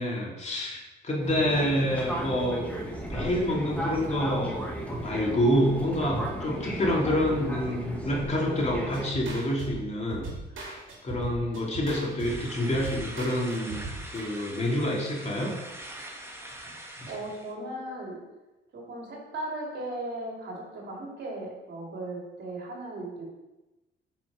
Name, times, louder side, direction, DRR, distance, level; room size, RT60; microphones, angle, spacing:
voice 1, 0.0-2.6 3.1-4.6 5.0-10.3 11.0-13.8 14.1-15.6 17.0-17.1, equal, 35° left, -3 dB, 2.7 m, -27 dB
Fixed-wing aircraft airplane, 1.2-9.1, right 1 dB, 5° left, 1.8 m, -35 dB
sound 1, 8.6-14.2, right 3 dB, 75° right, 2.7 m, -39 dB
sound 2, 12.2-17.5, right 1 dB, 10° right, 1.6 m, -43 dB
voice 2, 17.1-18.2 18.7-23.3, right 1 dB, 60° right, -3 dB, 3.2 m, -37 dB
7.8 x 6.0 x 5.0 m, 1.0 s
cardioid pair, 90°, 20 cm